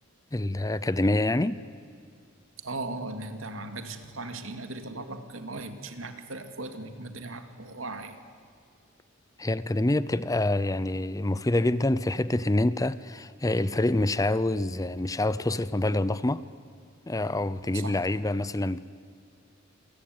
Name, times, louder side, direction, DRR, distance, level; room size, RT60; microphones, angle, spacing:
voice 1, 0.3-1.6 9.4-16.4 17.1-18.8, left 1 dB, 15° left, 0.6 m, -26 dB
voice 2, 2.6-8.2 17.7-18.1, right 2 dB, 75° right, 2.4 m, -38 dB
28.0 x 23.0 x 9.4 m
head